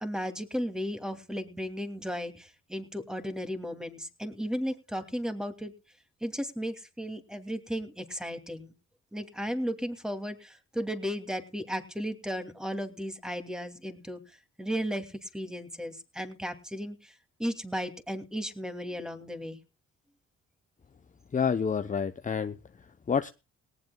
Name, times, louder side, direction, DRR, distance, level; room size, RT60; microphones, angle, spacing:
voice 1, 0.0-5.7 6.2-8.7 9.1-14.2 14.6-17.1 17.4-19.6, equal, ahead, 7 dB, 2.6 m, -35 dB
voice 2, 21.3-23.3, left 6 dB, 25° left, 9 dB, 0.8 m, -29 dB
18.5 x 18.5 x 2.3 m, 0.31 s
cardioid pair, 90°, 30 cm